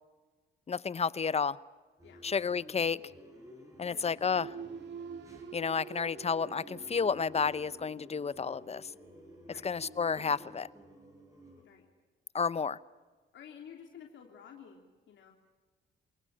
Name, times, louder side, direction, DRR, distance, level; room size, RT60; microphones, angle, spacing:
voice 1, 0.7-1.6 2.2-3.0 3.8-4.5 5.5-8.9 9.6-10.7 12.3-12.8, left 5 dB, 30° left, 0.9 m, -31 dB
sound 1, 2.0-11.6, equal, 15° right, 7.4 m, -53 dB
sound 2, 4.3-8.3 8.7-8.9, right 6 dB, 65° right, 2.4 m, -47 dB
voice 2, 11.6-11.9 13.3-15.3, left 8 dB, 70° left, 3.2 m, -52 dB
28.0 x 18.5 x 8.8 m
cardioid pair, 90°, 20 cm